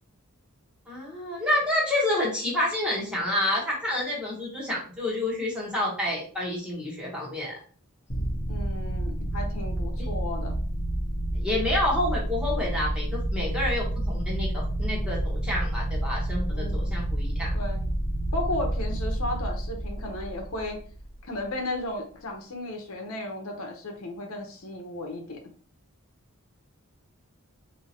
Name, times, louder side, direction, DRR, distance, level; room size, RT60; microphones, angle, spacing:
voice 1, 0.9-7.5 10.0-10.1 11.3-17.5, left 1 dB, 5° right, -5 dB, 1.3 m, -29 dB
sound 1, 8.1-21.4, right 1 dB, 40° left, 1.0 m, -29 dB
voice 2, 8.5-10.6 16.5-16.9 17.5-17.8 18.3-20.8 21.3-25.4, left 1 dB, 75° left, 2 dB, 0.9 m, -34 dB
4.5 x 2.8 x 2.9 m, 0.43 s
head